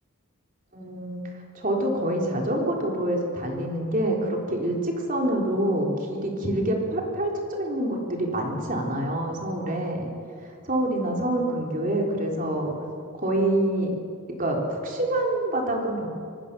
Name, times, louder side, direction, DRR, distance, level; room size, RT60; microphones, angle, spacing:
voice 1, 0.7-1.2 1.5-10.1 10.6-12.7 13.1-13.9 14.3-16.1, right 1 dB, 40° right, 0 dB, 3.8 m, -26 dB
26.0 x 19.0 x 6.9 m, 2.3 s
head